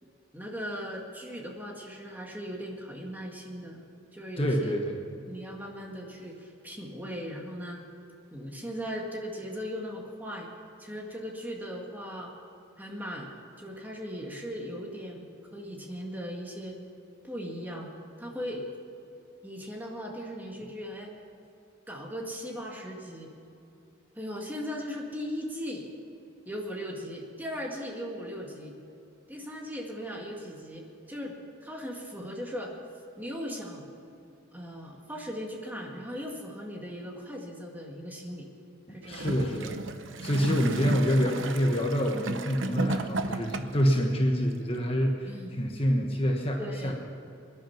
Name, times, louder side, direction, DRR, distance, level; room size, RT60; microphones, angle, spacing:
voice 1, 0.3-3.8 4.1-4.7 5.3-7.8 8.3-10.5 10.8-12.3 12.8-16.8 17.2-17.9 18.2-18.7 19.4-21.1 21.9-23.3 24.2-25.9 26.5-28.8 29.3-31.4 31.6-32.7 33.2-33.9 34.5-38.5 38.9-39.7 40.4-40.7 45.3-45.5 46.6-46.9, equal, 10° right, 0 dB, 1.9 m, -38 dB
voice 2, 4.4-5.0 39.0-39.8 40.2-46.9, equal, 25° left, 1 dB, 1.3 m, -27 dB
Gurgling / Toilet flush, 39.0-43.9 44.7-44.8, right 2 dB, 65° right, 0.8 m, -34 dB
22.0 x 10.5 x 5.9 m, 2.7 s
head